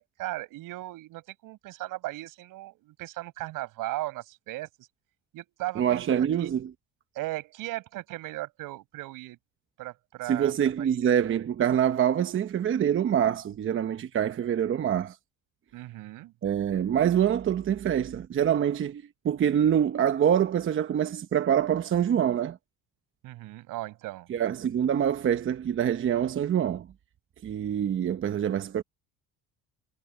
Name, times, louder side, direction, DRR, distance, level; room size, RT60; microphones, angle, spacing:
voice 1, 0.0-4.9 5.3-6.5 7.1-9.4 9.8-11.1 15.7-16.3 23.2-24.3, right 18 dB, 75° right, 5.8 m, -37 dB
voice 2, 5.8-6.7 10.2-15.2 16.4-22.6 24.3-26.9 27.4-28.8, right 9 dB, 40° right, 0.9 m, -25 dB
cardioid pair, 110°, 33 cm